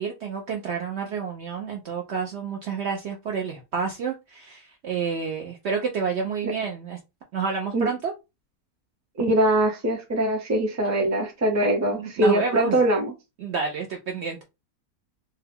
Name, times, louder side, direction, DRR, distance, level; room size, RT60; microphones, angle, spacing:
voice 1, 0.0-7.0 7.3-8.1 12.0-12.8 13.4-14.4, right 5 dB, 65° right, 2 dB, 0.7 m, -29 dB
voice 2, 9.2-13.1, right 1 dB, 15° right, 2 dB, 0.6 m, -22 dB
2.7 x 2.3 x 3.5 m, 0.24 s
omnidirectional pair, 1.5 m